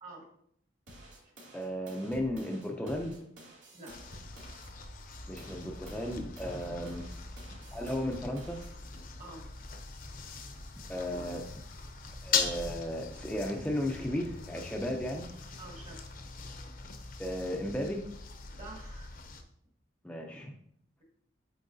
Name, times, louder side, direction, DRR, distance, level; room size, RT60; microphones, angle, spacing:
sound 1, 0.9-4.7 5.1-8.7, right 1 dB, 85° right, 2.5 m, -51 dB
voice 1, 1.5-3.2 5.3-7.0 7.7-8.6 10.9-11.5 12.2-15.3 17.2-18.1 20.0-20.5, equal, 5° left, 1 dB, 0.5 m, -35 dB
sound 2, 3.9-19.4, left 5 dB, 50° left, 0.7 m, -40 dB
voice 2, 15.6-16.0 18.6-19.1, right 3 dB, 40° right, -1 dB, 1.8 m, -47 dB
8.5 x 4.5 x 2.7 m, 0.68 s
head